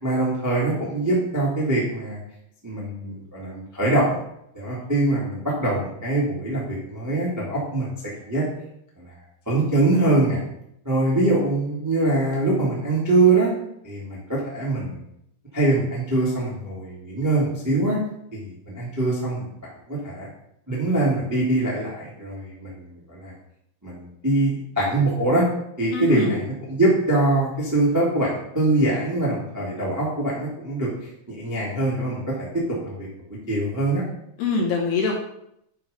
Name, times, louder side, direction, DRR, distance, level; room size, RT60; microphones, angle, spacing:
voice 1, 0.0-2.2 2.6-4.2 4.5-7.9 8.2-8.4 9.0-9.1 9.4-10.4 10.8-13.5 13.8-15.0 15.5-18.0 18.3-20.3 20.7-23.3 23.8-25.4 25.8-30.9 31.3-34.1, right 2 dB, 15° right, -6 dB, 0.7 m, -23 dB
voice 2, 25.9-26.4 34.4-35.1, left 4 dB, 65° left, -1 dB, 2.8 m, -24 dB
10.0 x 5.5 x 5.2 m, 0.75 s
omnidirectional pair, 5.9 m